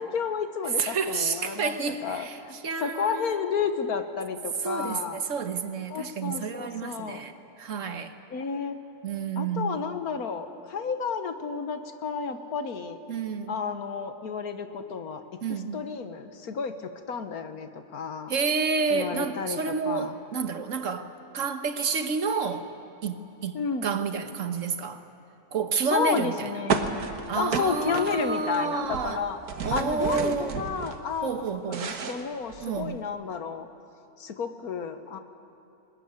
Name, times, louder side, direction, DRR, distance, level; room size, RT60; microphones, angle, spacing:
voice 1, 0.0-5.2 5.9-7.3 8.3-8.8 9.4-13.0 13.5-18.3 18.9-20.1 23.5-23.9 25.9-27.0 27.3-29.4 29.7-31.3 31.7-33.7 34.2-35.2, left 6 dB, 70° left, 1.7 m, -31 dB
voice 2, 0.8-3.3 4.6-8.1 9.0-9.8 13.1-13.6 15.4-15.8 18.3-21.1 21.3-22.7 23.0-25.0 25.5-26.5 27.3-29.2 29.6-30.6 31.2-32.0 32.6-33.0, right 5 dB, 55° right, 1.5 m, -30 dB
sound 1, 26.7-28.6 28.8-31.0 31.4-32.9, right 6 dB, 75° right, 1.8 m, -32 dB
20.5 x 20.5 x 9.6 m
omnidirectional pair, 1.6 m